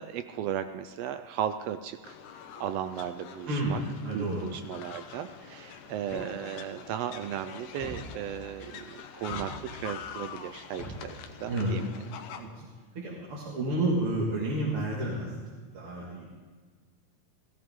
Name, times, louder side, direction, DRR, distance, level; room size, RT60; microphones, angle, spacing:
voice 1, 0.0-3.8 4.1-11.9 12.4-12.7, right 9 dB, 80° right, 10 dB, 1.4 m, -36 dB
sound 1, 2.0-12.4, left 8 dB, 90° left, 2.3 m, -45 dB
voice 2, 3.5-4.5 11.4-11.7 12.3-12.7 12.9-16.3, right 1 dB, 50° right, -4 dB, 2.6 m, -31 dB
sound 2, 6.1-6.8 7.8-8.6 9.3-10.1 10.8-11.8, equal, 55° left, 3.1 m, -43 dB
16.0 x 16.0 x 3.6 m, 1.5 s
omnidirectional pair, 3.4 m